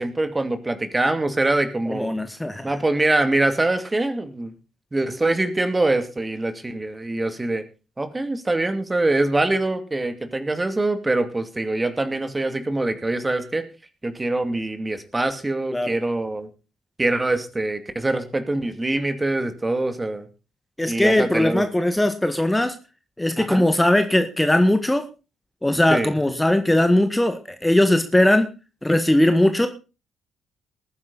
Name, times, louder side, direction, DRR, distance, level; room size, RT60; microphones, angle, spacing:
voice 1, 0.0-2.1 2.6-4.5 4.9-7.6 8.0-13.7 14.0-16.5 17.0-20.3 20.9-21.6 23.4-23.6 25.9-26.1, right 2 dB, 20° right, 9 dB, 2.4 m, -24 dB
voice 2, 1.9-2.7 15.7-15.9 20.8-22.7 23.2-25.1 25.6-28.5 28.8-29.7, left 1 dB, 10° left, 8 dB, 1.7 m, -19 dB
19.5 x 9.8 x 4.1 m, 0.32 s
hypercardioid pair, 40°, 0 cm